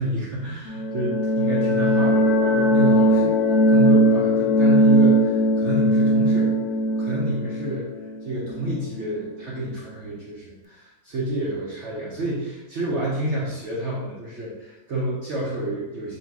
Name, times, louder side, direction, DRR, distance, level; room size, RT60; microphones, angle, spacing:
voice 1, 0.0-3.4 3.7-6.6 7.0-7.9 8.2-16.2, right 1 dB, 65° right, -6 dB, 0.7 m, -28 dB
sound 1, 0.6-9.2, equal, 75° left, 0.9 m, -19 dB
3.0 x 2.8 x 4.5 m, 1.0 s
omnidirectional pair, 2.0 m